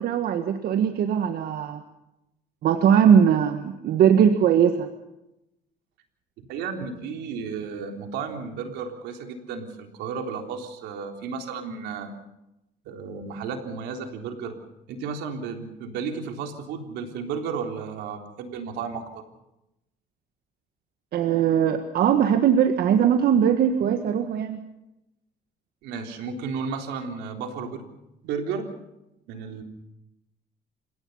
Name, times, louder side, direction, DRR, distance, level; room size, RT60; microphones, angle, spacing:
voice 1, 0.0-1.8 2.6-4.9 21.1-24.6, right 8 dB, 65° right, 7 dB, 1.6 m, -20 dB
voice 2, 6.5-12.1 12.9-14.5 14.9-19.2 25.8-27.8 28.2-28.7 29.3-29.6, right 5 dB, 90° right, 4 dB, 3.7 m, -33 dB
29.5 x 17.5 x 5.7 m, 0.89 s
cardioid pair, 110°, 17 cm